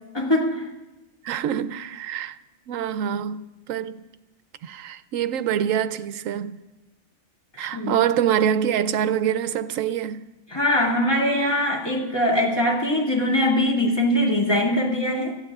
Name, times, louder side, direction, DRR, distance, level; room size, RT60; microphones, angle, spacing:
voice 1, 0.1-0.7 7.6-8.0 10.5-15.4, left 1 dB, 20° left, 2.3 m, -22 dB
voice 2, 1.2-2.4 2.7-4.1 4.6-6.6 7.6-10.3, right 9 dB, 70° right, 1.0 m, -25 dB
27.0 x 15.5 x 2.4 m
omnidirectional pair, 1.4 m